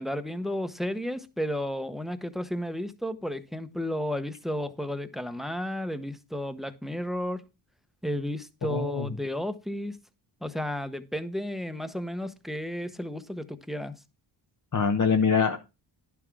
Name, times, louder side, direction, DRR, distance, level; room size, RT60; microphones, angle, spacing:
voice 1, 0.0-7.4 8.0-10.0 10.4-13.9, equal, ahead, 0.9 m, -33 dB
voice 2, 8.6-9.1 14.7-15.6, left 5 dB, 40° left, 0.9 m, -24 dB
11.0 x 5.9 x 4.7 m
wide cardioid pair, 105°, 46 cm